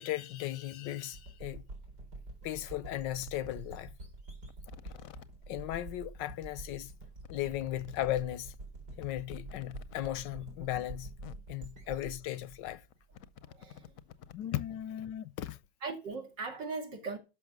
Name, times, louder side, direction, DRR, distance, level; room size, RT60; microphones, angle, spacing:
voice 1, 0.0-1.6 2.4-3.9 5.5-6.9 7.3-8.5 9.0-11.1 11.5-12.8 14.3-15.6, left 13 dB, 85° left, 1.4 m, -36 dB
sound 1, 1.0-1.1 2.2-2.3 2.7-2.8 3.2-3.6 4.5-5.3 6.4-6.5 6.7-6.8 7.2-8.1 8.5-8.6 9.0-10.1 10.9-11.0 11.2-11.4 12.6-14.4 14.9-15.0, left 9 dB, 65° left, 0.9 m, -51 dB
sound 2, 1.1-13.7, right 2 dB, 65° right, 4.3 m, -47 dB
voice 2, 13.5-13.9 15.8-17.2, right 4 dB, 85° right, 3.0 m, -39 dB
12.0 x 5.9 x 6.0 m
omnidirectional pair, 1.9 m